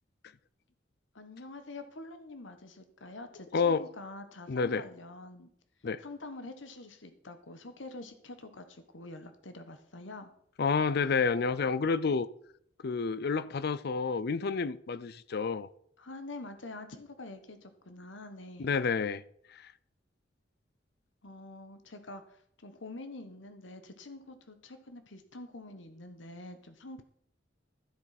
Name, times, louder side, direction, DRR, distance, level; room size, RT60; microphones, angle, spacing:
voice 1, 1.1-5.5 6.0-10.3 16.0-18.7 21.2-27.0, left 2 dB, 80° left, 1.3 m, -46 dB
voice 2, 3.5-3.9 4.5-4.8 5.8-6.0 10.6-12.3 12.8-15.7 18.6-19.2 19.5-19.7, left 5 dB, 55° left, 0.5 m, -29 dB
13.0 x 7.7 x 5.8 m
head